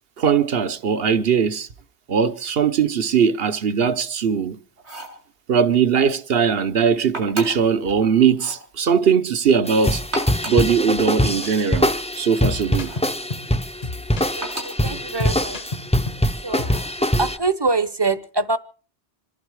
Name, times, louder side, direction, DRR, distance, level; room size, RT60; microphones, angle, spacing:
voice 1, 0.2-1.7 2.1-4.6 5.5-10.0 10.5-12.9, right 6 dB, 60° right, 1.2 m, -20 dB
sound 1, 4.8-5.2 7.1-7.7 8.3-8.7 10.0-10.7 12.8-13.2 14.4-14.9 16.6-17.0, right 2 dB, 85° right, 5.9 m, -34 dB
sound 2, 9.7-17.4, equal, 5° left, 0.6 m, -23 dB
sound 3, 11.4-11.6 11.9-12.0 12.4-13.5 13.8-16.3 16.6-16.8, left 3 dB, 40° left, 1.0 m, -32 dB
voice 2, 14.3-15.8 16.4-16.9 17.2-18.6, right 3 dB, 25° right, 0.8 m, -24 dB
26.0 x 11.5 x 4.8 m
omnidirectional pair, 1.1 m